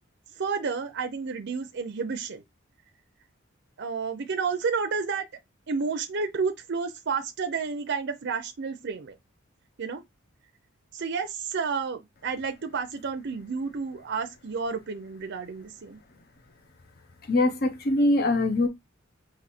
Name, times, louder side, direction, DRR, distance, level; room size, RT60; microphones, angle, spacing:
voice 1, 0.4-2.4 3.8-5.3 5.7-9.2 9.8-10.0 10.9-16.0, right 5 dB, 60° right, 0.5 m, -31 dB
voice 2, 17.3-18.7, left 2 dB, 50° left, 0.9 m, -22 dB
4.0 x 2.7 x 4.2 m
head